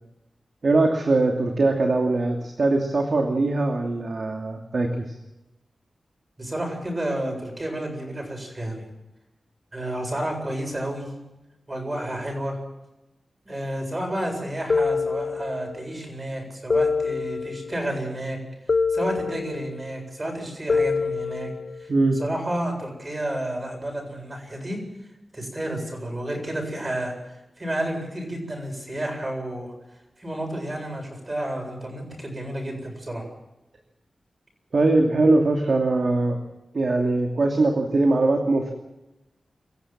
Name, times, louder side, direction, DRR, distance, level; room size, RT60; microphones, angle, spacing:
voice 1, 0.6-5.2 21.9-22.2 34.7-36.4 36.7-38.7, right 2 dB, 55° right, 2 dB, 2.7 m, -21 dB
voice 2, 6.4-8.8 9.7-11.1 11.7-12.6 13.5-18.4 18.9-21.5 21.8-21.9 22.2-24.8 25.3-27.1 27.6-29.7 30.2-33.2, right 1 dB, 25° right, 2 dB, 7.8 m, -31 dB
sound 1, 14.7-15.9 16.7-17.9 18.7-19.9 20.7-21.9, left 4 dB, 55° left, 1.0 m, -25 dB
25.5 x 15.0 x 7.6 m, 0.96 s
wide cardioid pair, 105°, 0 cm